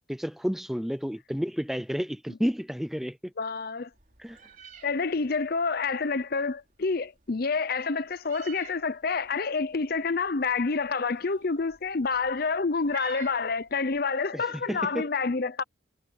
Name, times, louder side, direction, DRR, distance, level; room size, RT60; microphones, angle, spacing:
voice 1, 0.0-3.3 4.2-4.4 14.3-15.1, equal, ahead, 0.6 m, -31 dB
voice 2, 3.4-3.9 4.8-15.6, left 4 dB, 50° left, 0.6 m, -28 dB
Meow, 3.9-14.0, right 8 dB, 40° right, 3.8 m, -52 dB
head